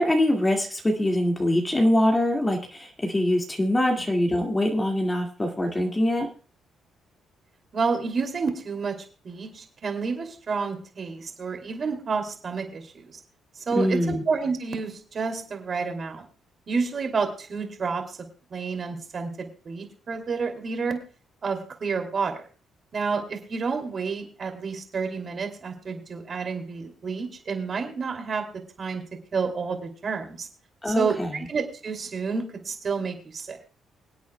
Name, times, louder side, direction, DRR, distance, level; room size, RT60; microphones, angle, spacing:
voice 1, 0.0-6.3 13.8-14.2 30.8-31.5, left 1 dB, 20° left, 1 dB, 2.0 m, -23 dB
voice 2, 7.7-13.2 13.6-16.2 16.7-18.2 18.5-21.0 21.4-22.4 22.9-28.5 28.8-29.0 29.3-30.5 30.9-33.6, right 5 dB, 45° right, 5 dB, 2.6 m, -30 dB
25.0 x 8.6 x 2.2 m, 0.37 s
cardioid pair, 90°, 0 cm